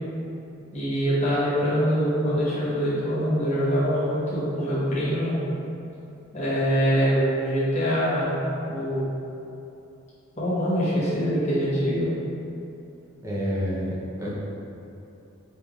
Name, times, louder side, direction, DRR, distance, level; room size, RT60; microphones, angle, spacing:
voice 1, 0.7-5.3 6.3-8.3 8.7-9.1 10.4-12.1, equal, 35° left, -11 dB, 1.0 m, -24 dB
voice 2, 13.2-14.3, equal, 15° right, -8 dB, 0.7 m, -28 dB
5.3 x 3.3 x 2.4 m, 2.8 s
head